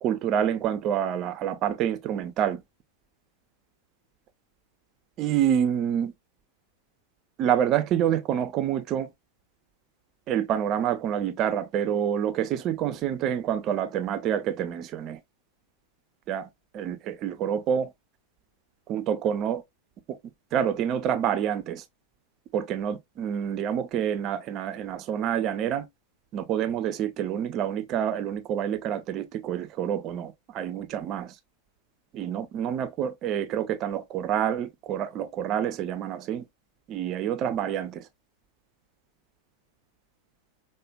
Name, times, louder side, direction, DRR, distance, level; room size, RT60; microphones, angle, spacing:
voice 1, 0.0-2.6 5.2-6.1 7.4-9.1 10.3-15.2 16.3-16.5 16.7-17.9 18.9-19.6 20.5-21.8 22.5-25.9 26.3-31.4 32.1-36.4 36.9-38.1, right 9 dB, 35° right, 0.4 m, -27 dB
4.8 x 2.1 x 2.3 m
figure-of-eight pair, 90°, 0 cm